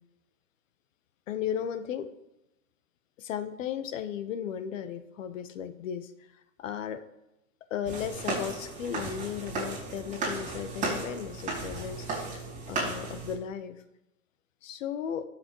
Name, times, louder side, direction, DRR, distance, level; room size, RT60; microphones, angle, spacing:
voice 1, 1.3-2.1 3.2-6.1 6.6-7.0 7.7-13.8 14.6-15.2, left 9 dB, 60° left, 10 dB, 1.1 m, -35 dB
sound 1, 7.9-13.3, right 3 dB, 15° right, 4.8 m, -35 dB
19.5 x 7.3 x 3.1 m, 0.90 s
hypercardioid pair, 150°, 42 cm